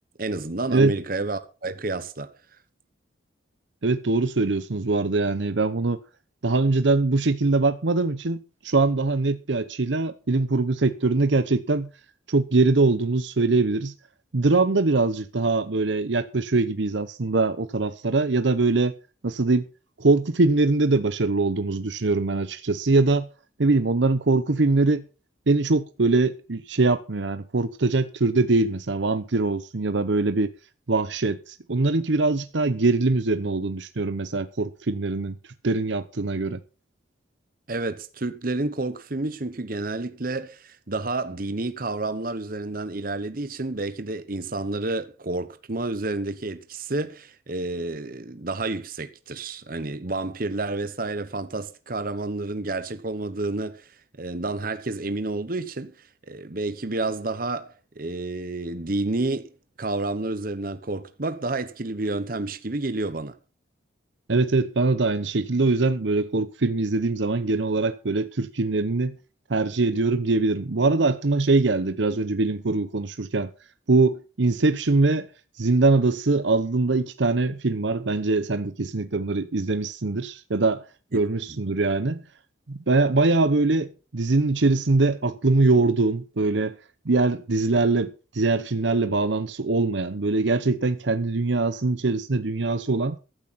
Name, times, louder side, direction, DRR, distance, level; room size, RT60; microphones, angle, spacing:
voice 1, 0.2-2.3 37.7-59.5 59.8-63.4, right 2 dB, 45° right, 1.0 m, -30 dB
voice 2, 3.8-6.0 6.4-11.9 12.3-13.9 14.3-18.9 19.2-19.6 20.0-23.3 23.6-25.0 25.5-30.5 30.9-35.3 35.6-36.6 64.3-69.1 69.5-73.5 73.9-75.3 75.6-80.9 81.1-82.2 82.7-86.8 87.1-93.2, right 3 dB, 70° right, 0.8 m, -22 dB
15.0 x 12.5 x 4.2 m
head